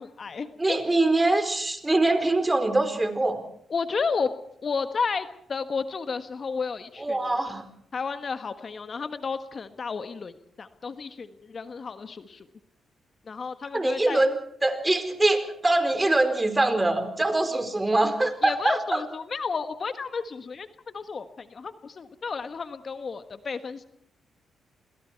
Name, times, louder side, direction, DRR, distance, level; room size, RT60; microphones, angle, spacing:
voice 1, 0.0-0.8 3.7-4.3 4.6-7.2 7.9-12.5 13.3-14.2 18.4-20.7 20.9-23.8, left 5 dB, 50° left, 10 dB, 1.4 m, -32 dB
voice 2, 0.6-3.4 7.0-7.6 13.7-19.0, right 2 dB, 20° right, 8 dB, 4.6 m, -23 dB
30.0 x 21.5 x 4.7 m, 0.68 s
supercardioid pair, 50°, 0 cm